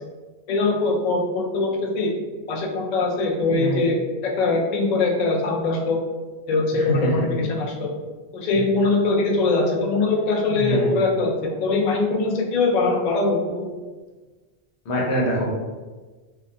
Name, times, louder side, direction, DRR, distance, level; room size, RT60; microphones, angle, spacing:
voice 1, 0.5-2.1 2.5-4.0 4.2-6.0 6.5-7.9 8.3-13.7, left 3 dB, 60° left, 0 dB, 0.4 m, -22 dB
voice 2, 3.5-3.8 6.7-7.2 10.5-10.9 14.8-15.5, equal, 90° left, -3 dB, 1.0 m, -24 dB
2.5 x 2.2 x 2.6 m, 1.3 s
omnidirectional pair, 1.1 m